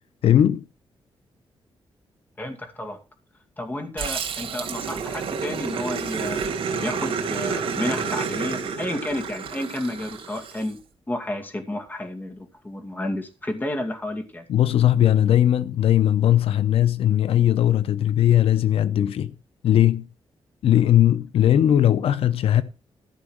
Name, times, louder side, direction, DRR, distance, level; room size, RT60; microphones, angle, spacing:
voice 1, 0.2-0.6 14.5-19.3 19.6-20.1 20.6-22.6, left 11 dB, 85° left, 0.7 m, -19 dB
voice 2, 2.4-3.0 3.6-6.5 6.8-10.8 11.1-14.5, left 1 dB, 20° left, 2.3 m, -31 dB
Growling, 4.0-10.7, right 6 dB, 75° right, 2.5 m, -29 dB
13.5 x 5.4 x 6.2 m
wide cardioid pair, 120°, 10 cm